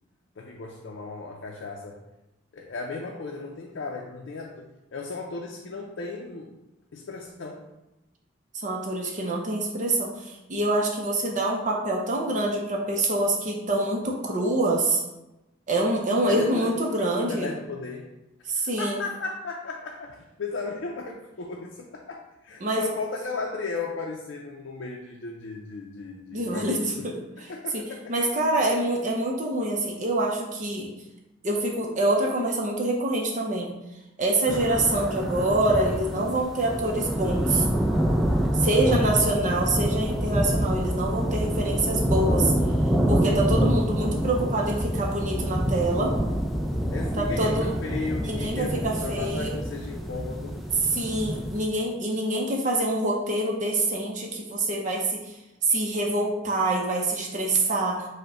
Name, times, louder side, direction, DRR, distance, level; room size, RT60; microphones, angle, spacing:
voice 1, 0.4-2.0 2.5-4.7 4.9-6.5 6.9-7.6 16.2-18.1 18.5-27.1 27.4-28.1 46.9-50.6, left 3 dB, 70° left, 0 dB, 0.5 m, -35 dB
voice 2, 8.5-15.0 15.7-17.5 18.5-19.0 22.6-22.8 26.3-27.2 27.7-30.9 31.4-33.7 34.2-37.7 38.5-42.5 43.1-46.1 47.2-47.7 48.2-49.6 50.9-55.3 55.6-58.1, right 2 dB, 40° right, 0 dB, 0.6 m, -26 dB
sound 1, 34.5-51.6, equal, ahead, 0.4 m, -26 dB
4.9 x 2.1 x 4.8 m, 0.96 s
head